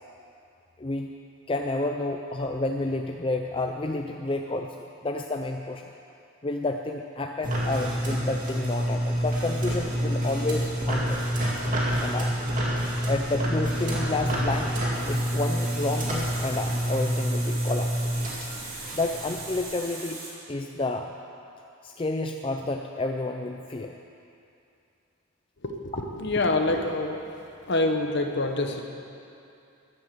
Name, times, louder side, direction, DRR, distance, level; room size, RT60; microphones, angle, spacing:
voice 1, 0.8-1.1 1.5-5.9 6.4-11.2 11.6-11.7 12.0-12.3 13.1-14.7 15.1-18.1 18.9-20.2 20.5-21.1 21.8-23.9, left 2 dB, 25° left, 3 dB, 0.5 m, -30 dB
sound 1, 7.4-19.6, equal, 35° right, 2.6 m, -28 dB
Water tap faucet, 14.9-20.3, right 3 dB, 70° right, 3.4 m, -40 dB
voice 2, 25.6-27.2 27.7-28.8, left 2 dB, 55° left, 4 dB, 1.2 m, -26 dB
14.0 x 11.0 x 7.0 m, 2.6 s
head